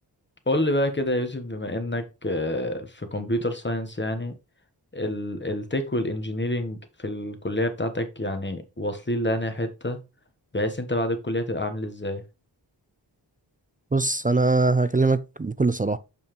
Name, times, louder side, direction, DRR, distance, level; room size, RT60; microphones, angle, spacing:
voice 1, 0.5-4.3 4.9-10.0 10.5-12.2, left 1 dB, 25° left, 1.2 m, -28 dB
voice 2, 13.9-16.0, right 3 dB, 20° right, 0.3 m, -22 dB
7.0 x 5.5 x 3.1 m
wide cardioid pair, 80°, 44 cm